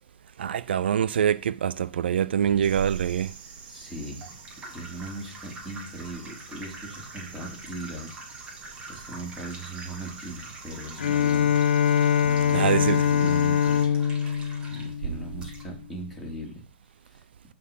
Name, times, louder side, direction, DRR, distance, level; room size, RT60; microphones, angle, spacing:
voice 1, 0.4-3.3 12.5-13.3, right 8 dB, 75° right, 0.4 m, -25 dB
sound 1, 2.6-13.9, right 5 dB, 55° right, 2.0 m, -47 dB
voice 2, 3.7-4.3 4.6-8.6 8.9-11.6 12.2-14.3 14.7-16.6 17.1-17.2, right 1 dB, ahead, 3.3 m, -39 dB
sound 2, 4.0-15.6, right 2 dB, 15° right, 2.4 m, -46 dB
Bowed string instrument, 11.0-15.7, left 8 dB, 80° left, 0.9 m, -23 dB
11.5 x 4.4 x 5.5 m
hypercardioid pair, 140°, 6 cm